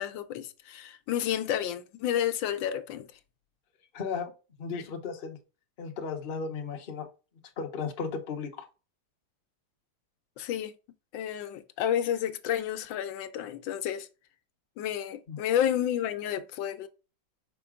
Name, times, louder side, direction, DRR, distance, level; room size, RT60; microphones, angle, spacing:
voice 1, 0.0-3.1 4.7-4.8 10.4-10.7 11.1-14.1 14.8-16.9, left 10 dB, 85° left, 1.4 m, -30 dB
voice 2, 3.9-4.3 4.6-5.4 5.8-7.1 7.6-8.6 15.3-15.4, left 5 dB, 40° left, 0.9 m, -35 dB
5.8 x 4.6 x 3.6 m
omnidirectional pair, 2.0 m